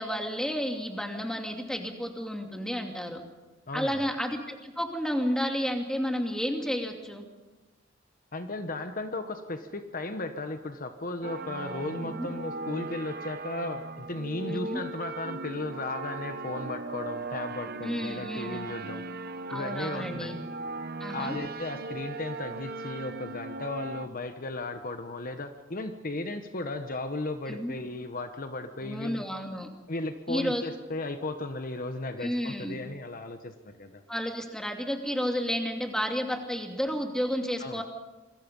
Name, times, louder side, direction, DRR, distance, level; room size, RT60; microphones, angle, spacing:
voice 1, 0.0-3.2 3.7-7.2 12.0-12.3 14.5-14.8 17.8-18.7 19.5-20.3 21.0-21.4 27.5-27.8 28.8-29.7 30.3-30.6 32.2-32.8 34.1-37.8, equal, 5° left, 3 dB, 2.6 m, -31 dB
voice 2, 3.7-4.0 8.3-19.1 19.5-20.4 21.1-29.2 29.9-34.0 37.6-37.8, left 2 dB, 45° left, 7 dB, 1.2 m, -35 dB
sound 1, 11.2-24.1, right 3 dB, 55° right, 1.0 m, -38 dB
27.5 x 22.0 x 5.5 m, 1.2 s
head